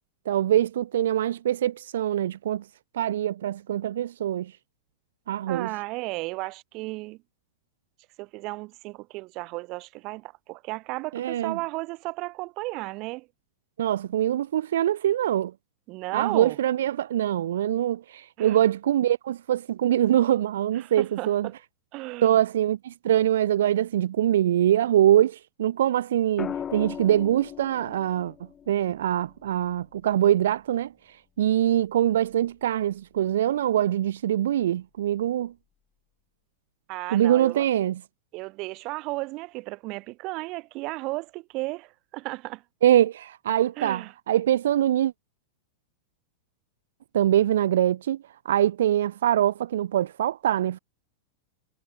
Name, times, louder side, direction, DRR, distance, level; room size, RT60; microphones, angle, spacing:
voice 1, 0.3-2.6 2.9-4.5 5.3-5.7 11.1-11.6 13.8-15.5 16.1-21.5 22.2-28.3 28.7-30.9 31.4-35.5 37.1-38.0 42.8-45.1 47.1-48.2 48.4-50.8, right 11 dB, 80° right, 0.8 m, -23 dB
voice 2, 5.5-7.2 8.2-13.3 15.9-16.6 18.4-18.6 20.7-21.6 21.9-22.4 36.9-37.6 38.3-42.6 43.8-44.1, right 23 dB, 35° right, 7.8 m, -34 dB
sound 1, 26.4-30.5 32.2-32.6, left 8 dB, 15° left, 3.5 m, -39 dB
supercardioid pair, 165°, 0 cm